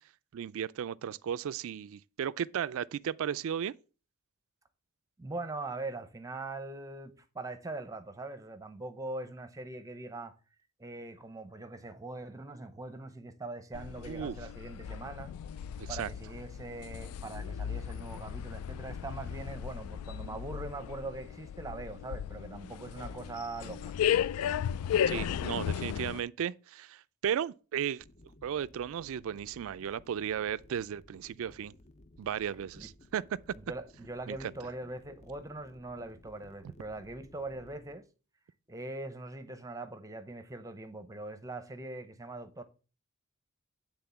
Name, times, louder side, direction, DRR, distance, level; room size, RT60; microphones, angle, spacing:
voice 1, 0.3-3.7 14.1-14.4 15.8-16.1 25.1-28.0 28.4-31.7 32.2-33.4 34.3-34.5, right 8 dB, 65° right, 0.3 m, -35 dB
voice 2, 5.2-10.3 10.8-15.3 15.9-23.9 32.8-32.9 33.7-38.0 38.7-42.6, right 2 dB, 15° right, 0.6 m, -42 dB
sound 1, 13.7-26.2, left 9 dB, 85° left, 0.3 m, -35 dB
sound 2, 28.0-38.0, left 1 dB, 30° left, 0.5 m, -58 dB
9.8 x 3.6 x 6.9 m
head